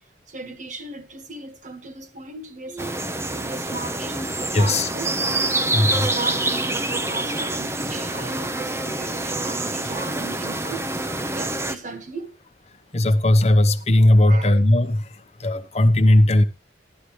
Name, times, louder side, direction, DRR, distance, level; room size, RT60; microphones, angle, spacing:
voice 1, 0.3-5.1 5.9-10.9 11.3-12.3 14.2-14.5, right 3 dB, 40° right, 1.6 m, -36 dB
sound 1, 2.8-11.8, right 2 dB, 15° right, 0.7 m, -26 dB
voice 2, 4.5-4.9 5.7-6.1 12.9-16.4, left 1 dB, 35° left, 0.9 m, -17 dB
15.0 x 11.5 x 3.2 m
head